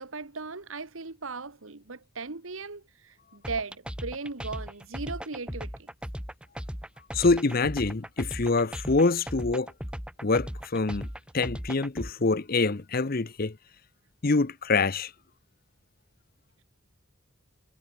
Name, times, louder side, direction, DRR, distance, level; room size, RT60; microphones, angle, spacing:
voice 1, 0.0-5.9, right 4 dB, 75° right, 1.6 m, -38 dB
sound 1, 3.4-12.1, equal, 5° right, 1.9 m, -37 dB
voice 2, 7.1-9.7 10.2-11.1 11.3-13.6 14.2-15.1, left 3 dB, 45° left, 0.8 m, -25 dB
head